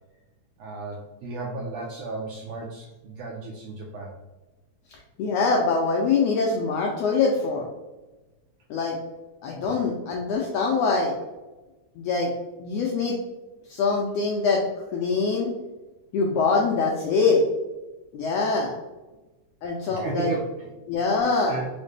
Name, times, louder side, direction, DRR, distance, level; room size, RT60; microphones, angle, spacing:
voice 1, 0.6-4.2 9.6-9.8 19.9-20.7 21.1-21.7, right 3 dB, 80° right, -1 dB, 1.5 m, -34 dB
voice 2, 5.2-7.7 8.7-9.0 9.4-11.1 12.0-12.3 12.6-13.2 13.7-14.6 14.9-15.5 16.1-17.4 18.1-18.7 19.6-20.3 20.9-21.6, left 4 dB, 90° left, -1 dB, 1.4 m, -23 dB
5.0 x 2.1 x 3.2 m, 1.1 s
omnidirectional pair, 3.4 m